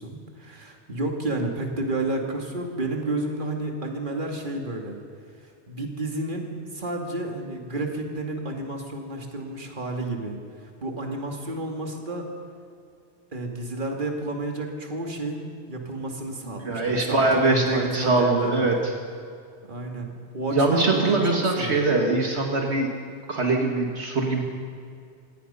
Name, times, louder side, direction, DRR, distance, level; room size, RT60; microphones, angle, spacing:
voice 1, 0.0-5.0 5.4-12.3 13.3-18.7 19.6-21.9, right 2 dB, 45° right, 2 dB, 2.4 m, -31 dB
voice 2, 16.6-18.7 20.5-22.9 23.3-24.4, right 2 dB, 70° right, 1 dB, 2.1 m, -22 dB
26.5 x 17.5 x 5.6 m, 2.3 s
omnidirectional pair, 1.2 m